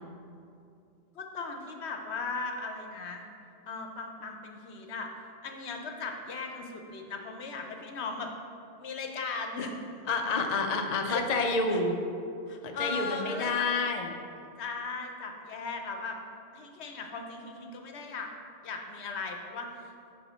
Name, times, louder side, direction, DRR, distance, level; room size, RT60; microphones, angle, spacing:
voice 1, 1.1-3.2 3.7-5.1 5.4-8.3 8.8-9.8 11.0-11.2 11.7-11.8 12.5-13.7 14.6-16.2 16.5-18.3 18.6-19.7, left 4 dB, 75° left, 3 dB, 1.0 m, -37 dB
voice 2, 10.1-12.0 12.6-14.1, left 3 dB, 45° left, 3 dB, 0.7 m, -28 dB
8.6 x 5.6 x 4.3 m, 2.5 s
omnidirectional pair, 1.1 m